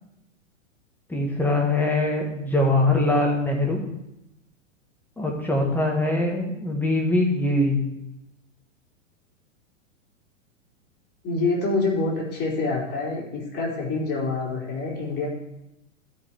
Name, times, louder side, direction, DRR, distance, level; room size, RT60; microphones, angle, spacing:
voice 1, 1.1-3.8 5.2-7.8, left 2 dB, 5° left, -1 dB, 1.6 m, -22 dB
voice 2, 11.2-15.3, left 3 dB, 25° left, -4 dB, 3.9 m, -26 dB
12.5 x 5.5 x 4.5 m, 0.87 s
hypercardioid pair, 130°, 38 cm